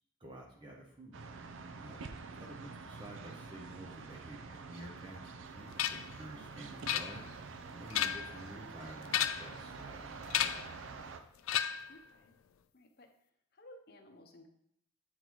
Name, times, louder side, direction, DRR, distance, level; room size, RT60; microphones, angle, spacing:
voice 1, 0.2-1.1 1.8-2.0 2.4-7.3 7.7-10.7 11.0-11.1, right 1 dB, 25° right, -2 dB, 0.8 m, -50 dB
sound 1, 1.1-11.2, right 4 dB, 70° right, 0.5 m, -47 dB
sound 2, 5.8-6.1 6.9-7.5 7.8-8.4 9.1-9.6 10.3-10.7 11.5-12.0, left 10 dB, 85° left, 0.4 m, -33 dB
voice 2, 11.9-12.3 12.7-13.1 13.6-14.5, left 1 dB, 50° left, 4 dB, 0.7 m, -56 dB
8.1 x 3.8 x 3.0 m, 0.71 s
head